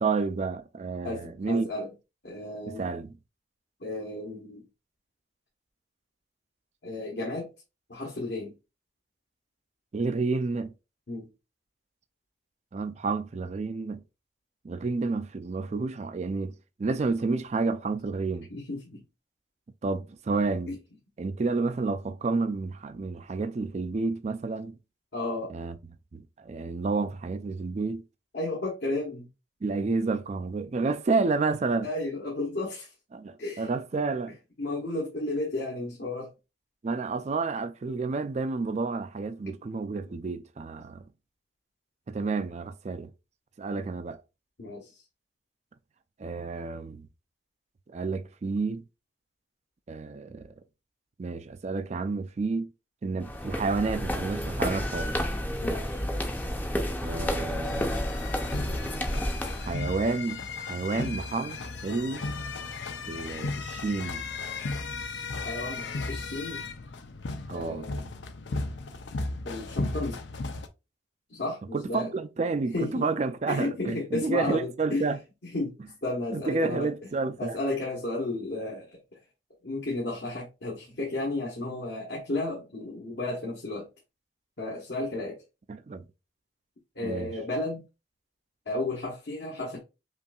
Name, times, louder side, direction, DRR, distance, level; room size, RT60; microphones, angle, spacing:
voice 1, 0.0-1.7 2.7-3.2 9.9-10.7 12.7-14.0 14.6-18.5 19.8-20.8 21.2-24.7 25.5-25.8 26.1-28.0 29.6-31.9 33.1-34.4 36.8-41.0 42.1-43.1 43.6-44.2 46.2-47.1 47.9-48.8 49.9-50.5 51.2-52.7 53.0-55.2 57.0-57.9 59.6-62.3 63.0-64.3 67.5-67.9 71.7-75.2 76.3-77.6 85.7-86.1 87.0-87.3, right 3 dB, 40° right, 0.4 m, -30 dB
voice 2, 1.0-1.9 2.2-2.9 3.8-4.6 6.8-7.5 7.9-8.5 11.1-11.3 18.5-19.0 25.1-25.5 28.3-29.3 31.8-32.9 33.4-33.7 34.6-36.3 43.7-43.9 44.6-44.9 55.6-56.0 65.3-66.6 67.5-68.1 69.4-70.3 71.3-72.1 72.7-73.1 73.5-75.1 75.4-75.7 76.0-76.9 77.4-79.0 79.6-83.9 84.6-85.4 86.9-87.9 88.7-89.8, left 2 dB, 70° left, 1.2 m, -33 dB
sound 1, 53.2-59.7, equal, 10° left, 0.5 m, -30 dB
sound 2, 57.6-70.7, left 3 dB, 85° left, 0.6 m, -35 dB
5.4 x 2.6 x 2.3 m
head